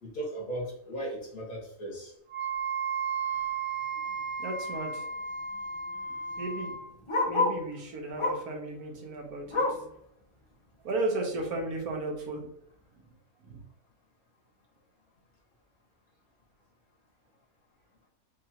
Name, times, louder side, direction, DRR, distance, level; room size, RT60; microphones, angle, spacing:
voice 1, 0.0-2.1, right 1 dB, 75° left, -4 dB, 2.0 m, -37 dB
Wind instrument woodwind instrument, 2.3-6.8, right 5 dB, 60° right, 0.5 m, -34 dB
Bark, 4.0-4.2 4.5-4.6 4.8-7.7 8.1-8.6 8.9-9.9 10.4-10.5 10.9-11.0 11.7-11.8, left 2 dB, 35° left, 0.5 m, -31 dB
voice 2, 4.4-5.0 6.4-6.7 7.3-9.8 10.8-12.5 13.4-13.6, right 2 dB, 90° right, 1 dB, 1.5 m, -34 dB
5.3 x 2.5 x 2.8 m, 0.68 s
omnidirectional pair, 1.6 m